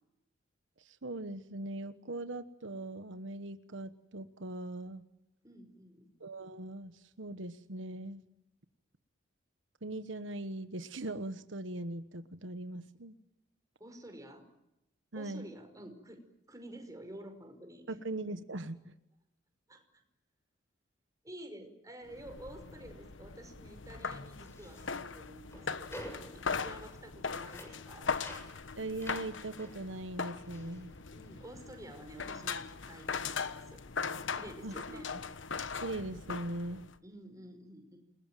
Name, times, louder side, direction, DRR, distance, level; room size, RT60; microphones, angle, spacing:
voice 1, 0.8-5.0 6.2-8.2 9.8-13.1 15.1-15.5 17.9-18.9 28.8-30.9 34.6-34.7 35.8-36.8, right 2 dB, 80° right, 10 dB, 1.3 m, -40 dB
voice 2, 5.4-6.1 13.8-14.4 15.1-18.0 19.7-20.0 21.2-28.1 31.1-33.8 34.3-35.1 37.0-38.0, right 1 dB, 20° right, 5 dB, 5.3 m, -50 dB
sound 1, 22.1-37.0, left 5 dB, 80° left, 1.2 m, -40 dB
sound 2, 24.4-31.8 32.0-33.5, equal, 15° left, 7.1 m, -52 dB
29.0 x 20.5 x 9.1 m, 0.88 s
head